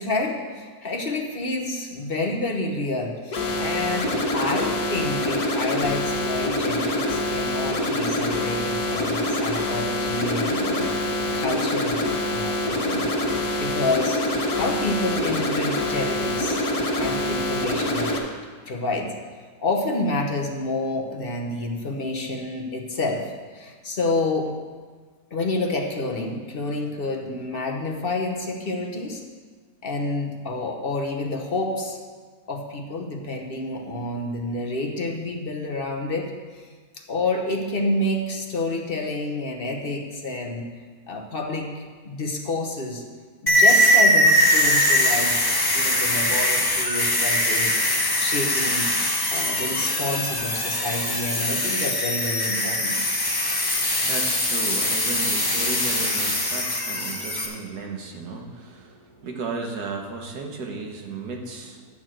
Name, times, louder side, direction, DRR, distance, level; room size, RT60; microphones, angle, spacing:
voice 1, 0.0-11.1 11.3-12.0 12.3-14.2 14.5-16.6 17.0-18.2 18.6-19.1 19.6-23.3 23.5-24.5 25.3-29.2 29.8-32.0 32.5-36.3 36.9-40.7 41.1-43.0 43.4-48.9 49.3-53.0, left 2 dB, 40° left, 1 dB, 1.0 m, -29 dB
sound 1, 3.3-18.2, left 1 dB, 80° left, 1.8 m, -25 dB
sound 2, 43.5-57.5, left 1 dB, 15° left, 1.0 m, -22 dB
voice 2, 52.9-62.0, right 3 dB, 80° right, 2 dB, 1.7 m, -35 dB
11.0 x 4.6 x 7.6 m, 1.5 s
omnidirectional pair, 1.6 m